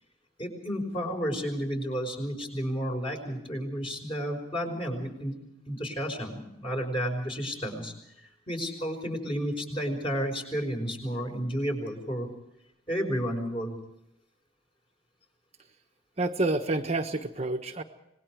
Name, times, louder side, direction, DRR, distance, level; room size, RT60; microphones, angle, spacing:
voice 1, 0.4-5.3 5.7-12.3 12.9-13.8, equal, 30° left, 2 dB, 5.3 m, -32 dB
voice 2, 16.2-17.8, right 2 dB, 35° right, 4 dB, 1.2 m, -28 dB
26.0 x 20.5 x 4.8 m, 0.82 s
head